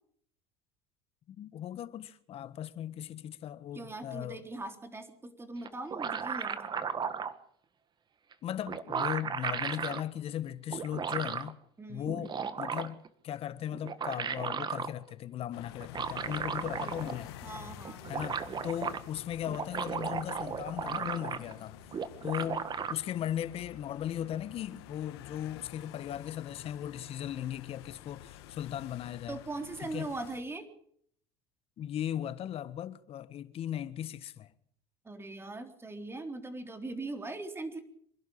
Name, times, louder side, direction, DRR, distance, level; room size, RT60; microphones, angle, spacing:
voice 1, 1.4-4.4 8.4-11.6 11.9-17.5 18.1-21.8 22.2-29.4 29.8-30.1 31.8-34.5, left 10 dB, 50° left, 1.4 m, -37 dB
voice 2, 3.7-6.6 11.8-12.5 16.7-17.0 17.4-18.2 29.3-30.7 35.0-37.8, right 2 dB, 20° right, 3.7 m, -40 dB
sound 1, 5.7-7.4 8.3-8.4 8.7-10.0 10.7-11.5 12.1-13.1 13.7-14.9 15.8-17.3 17.6-17.7 17.9-19.0 19.4-21.6 21.9-22.9, right 6 dB, 35° right, 1.7 m, -35 dB
sound 2, 15.5-30.4, left 12 dB, 85° left, 1.8 m, -49 dB
26.0 x 11.5 x 8.6 m
supercardioid pair, 95°, 13 cm